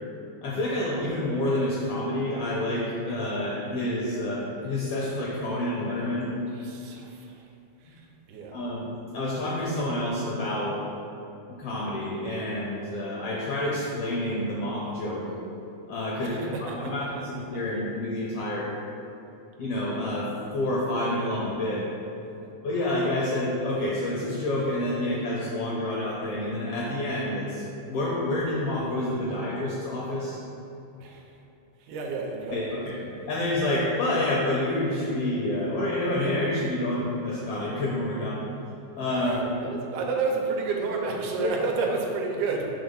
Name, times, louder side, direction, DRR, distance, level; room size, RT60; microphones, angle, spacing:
voice 1, 0.4-6.3 8.5-8.9 9.1-10.8 11.5-15.3 15.9-18.7 19.6-21.8 22.6-30.4 32.5-33.0 33.3-38.5 38.9-39.5 41.4-41.5, left 1 dB, 80° left, -5 dB, 1.4 m, -28 dB
voice 2, 6.5-7.4 7.8-8.6 16.2-17.1 17.5-17.6 22.2-22.5 31.0-31.2 31.8-33.0 39.1-42.7, right 4 dB, 80° right, 0 dB, 2.2 m, -31 dB
5.0 x 3.6 x 5.4 m, 2.9 s
omnidirectional pair, 3.5 m